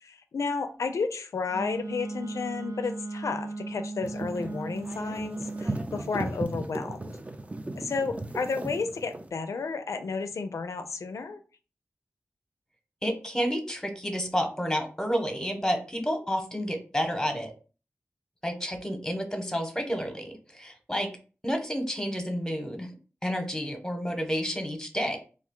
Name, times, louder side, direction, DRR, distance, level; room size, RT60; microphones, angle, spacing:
voice 1, 0.0-7.2 7.8-11.4, left 4 dB, 90° left, 8 dB, 0.4 m, -32 dB
Wind instrument woodwind instrument, 1.5-5.9, right 2 dB, 75° right, 0.6 m, -37 dB
sound 1, 4.0-9.3, right 2 dB, 25° right, 0.4 m, -37 dB
voice 2, 13.0-17.5 18.4-21.1 21.4-22.9 23.2-25.2, equal, 10° left, 4 dB, 0.9 m, -30 dB
2.3 x 2.2 x 3.6 m, 0.36 s
cardioid pair, 45°, 5 cm